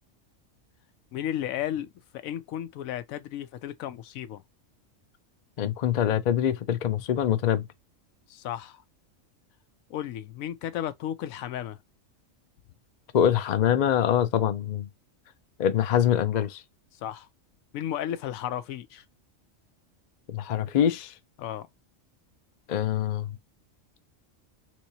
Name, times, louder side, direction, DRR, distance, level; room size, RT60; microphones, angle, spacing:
voice 1, 1.1-4.4 8.3-8.8 9.9-11.8 16.9-17.3 17.7-19.0 21.4-21.7, left 11 dB, 85° left, 1.0 m, -34 dB
voice 2, 5.6-7.6 13.1-14.9 15.6-16.6 20.3-21.1 22.7-23.4, left 10 dB, 60° left, 0.4 m, -24 dB
3.5 x 3.0 x 2.7 m
omnidirectional pair, 1.4 m